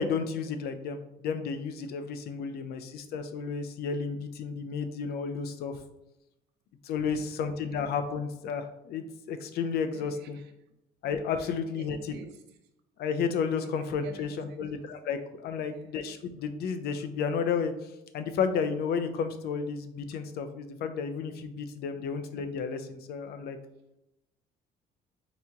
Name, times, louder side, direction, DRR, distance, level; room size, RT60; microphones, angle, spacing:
voice 1, 0.0-5.8 6.8-10.4 11.0-12.0 13.0-17.7 18.1-23.6, left 6 dB, 70° left, 9 dB, 0.6 m, -32 dB
voice 2, 7.0-7.9 9.9-10.5 11.4-12.4 13.6-13.7 14.0-14.9 15.6-15.9 21.8-22.0, right 5 dB, 80° right, 5 dB, 0.7 m, -50 dB
4.1 x 2.9 x 3.6 m, 0.87 s
cardioid pair, 110°, 17 cm